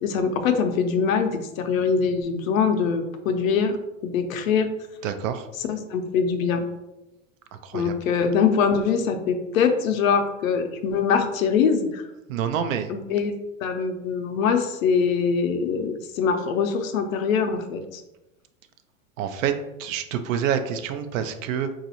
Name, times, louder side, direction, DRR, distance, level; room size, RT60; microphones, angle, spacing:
voice 1, 0.0-3.8 4.0-4.7 5.6-6.6 7.7-12.1 12.9-13.3 13.6-18.0, left 6 dB, 85° left, 6 dB, 0.6 m, -23 dB
voice 2, 5.0-5.5 7.6-7.9 12.3-12.9 19.2-19.5 19.8-21.7, right 8 dB, 75° right, 9 dB, 0.5 m, -27 dB
4.0 x 2.5 x 2.8 m, 0.97 s
hypercardioid pair, 110°, 40 cm